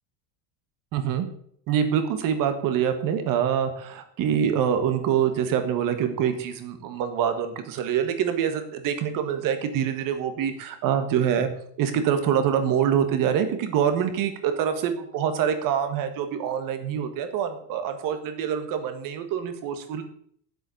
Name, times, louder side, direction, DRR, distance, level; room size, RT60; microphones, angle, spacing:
voice 1, 0.9-1.3 1.7-11.5 11.8-20.0, right 8 dB, 40° right, 8 dB, 1.6 m, -25 dB
8.9 x 7.9 x 7.7 m, 0.63 s
cardioid pair, 175°, 49 cm